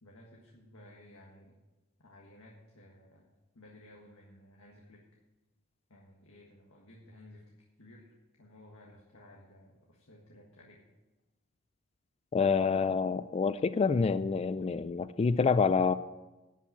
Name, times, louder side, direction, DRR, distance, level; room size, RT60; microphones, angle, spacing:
voice 1, 0.0-1.5 2.0-3.3 3.5-5.0 5.9-7.4 7.8-8.1 8.4-10.8, left 1 dB, 70° left, -1 dB, 1.6 m, -56 dB
voice 2, 12.3-15.9, left 5 dB, 30° left, 14 dB, 0.3 m, -27 dB
11.0 x 5.7 x 8.6 m, 1.1 s
head